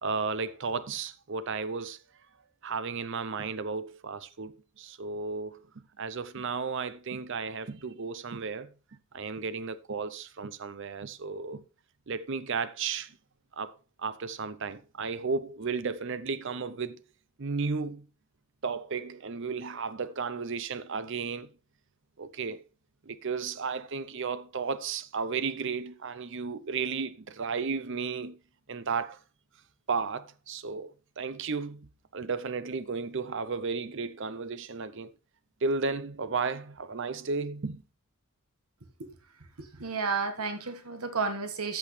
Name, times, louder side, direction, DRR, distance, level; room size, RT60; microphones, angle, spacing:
voice 1, 0.0-2.0 2.6-5.6 6.0-8.7 9.1-11.6 12.1-13.2 13.6-13.7 14.0-17.0 17.4-18.1 18.6-21.5 22.2-22.6 23.1-28.4 28.7-29.2 29.9-35.1 35.6-37.8, right 4 dB, 55° right, 0.7 m, -34 dB
voice 2, 39.6-41.8, right 4 dB, 80° right, 1.6 m, -32 dB
14.0 x 6.3 x 3.3 m
head